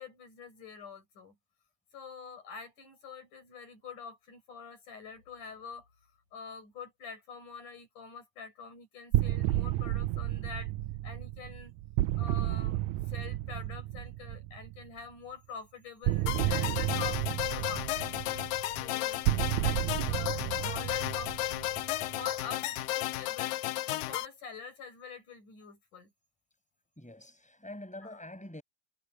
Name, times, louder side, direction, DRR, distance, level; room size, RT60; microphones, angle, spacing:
voice 1, 0.0-1.4 1.9-5.9 6.3-10.7 11.0-11.7 12.2-18.1 18.8-19.2 19.6-21.8 22.1-23.5 23.9-26.1 28.0-28.2, left 5 dB, 65° left, 7.5 m, -46 dB
sound 1, 9.1-14.9 16.0-22.3, right 16 dB, 80° right, 1.7 m, -32 dB
sound 2, 16.3-24.3, left 15 dB, 90° left, 2.5 m, -33 dB
voice 2, 27.0-28.6, left 1 dB, ahead, 7.4 m, -47 dB
omnidirectional pair, 3.8 m